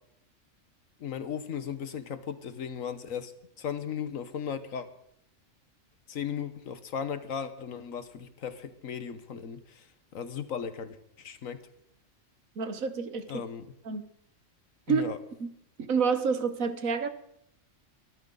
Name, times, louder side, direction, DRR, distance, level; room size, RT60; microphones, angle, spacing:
voice 1, 1.0-3.3 3.6-4.9 6.1-9.8 10.1-11.6 13.3-13.7 14.9-15.2, left 7 dB, 80° left, 11 dB, 1.6 m, -36 dB
voice 2, 12.6-13.4 13.8-14.1 14.9-15.1 15.4-15.5 15.9-17.1, right 5 dB, 85° right, 10 dB, 1.6 m, -28 dB
23.0 x 13.0 x 4.0 m, 0.77 s
omnidirectional pair, 1.4 m